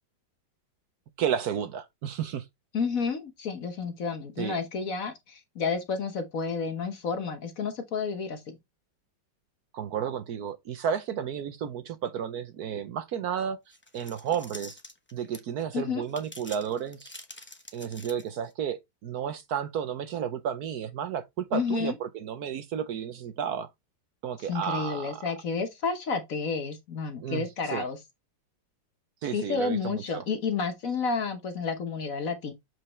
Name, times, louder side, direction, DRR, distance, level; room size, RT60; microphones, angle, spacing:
voice 1, 1.2-2.5 4.4-4.6 9.7-14.8 15.1-17.1 17.7-23.7 24.2-25.2 27.2-27.9 29.2-30.2, right 8 dB, 65° right, 1.1 m, -32 dB
voice 2, 2.7-8.5 15.7-16.0 21.5-21.9 24.5-28.0 29.3-32.5, left 5 dB, 50° left, 1.3 m, -30 dB
sound 1, 13.7-15.6 16.1-18.5, left 1 dB, 10° left, 0.5 m, -46 dB
7.7 x 4.7 x 3.1 m
omnidirectional pair, 2.0 m